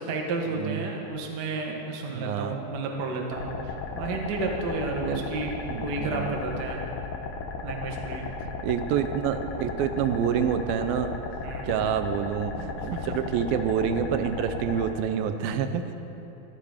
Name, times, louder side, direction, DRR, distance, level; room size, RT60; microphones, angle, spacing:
voice 1, 0.0-5.5 5.8-6.8 7.6-8.3 11.4-11.8 12.8-13.3, right 3 dB, 65° right, 1 dB, 1.0 m, -32 dB
voice 2, 2.1-2.6 5.0-5.3 5.7-6.3 8.6-11.1 11.6-16.0, right 8 dB, 80° right, 9 dB, 2.5 m, -27 dB
sound 1, 3.3-14.9, left 4 dB, 75° left, 2.7 m, -35 dB
14.0 x 13.0 x 5.0 m, 2.9 s
omnidirectional pair, 4.2 m